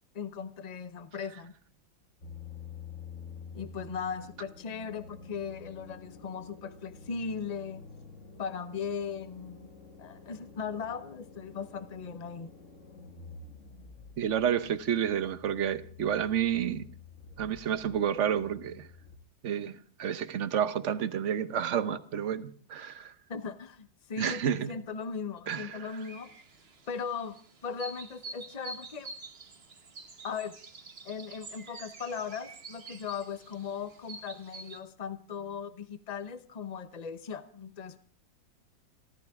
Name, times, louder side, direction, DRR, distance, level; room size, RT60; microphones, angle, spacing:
voice 1, 0.1-1.5 3.5-7.8 8.4-9.7 10.0-12.5 23.3-26.3 26.9-29.1 30.2-30.6 31.0-38.0, left 6 dB, 55° left, 0.4 m, -38 dB
sound 1, 2.2-19.2, left 4 dB, 40° left, 2.0 m, -49 dB
voice 2, 14.2-16.8 17.4-18.9 19.4-23.1 24.2-24.7 25.5-25.8, right 9 dB, 55° right, 0.9 m, -30 dB
sound 2, 25.9-34.8, right 3 dB, 35° right, 1.4 m, -47 dB
27.5 x 13.0 x 3.6 m
omnidirectional pair, 2.2 m